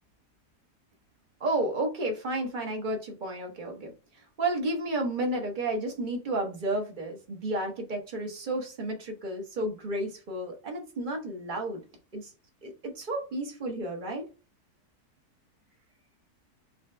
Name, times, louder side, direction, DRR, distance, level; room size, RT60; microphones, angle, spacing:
voice 1, 1.4-3.9 4.4-11.8 12.1-12.3 12.6-14.3, right 1 dB, 35° right, 1.1 m, -32 dB
4.2 x 3.2 x 3.2 m
omnidirectional pair, 1.7 m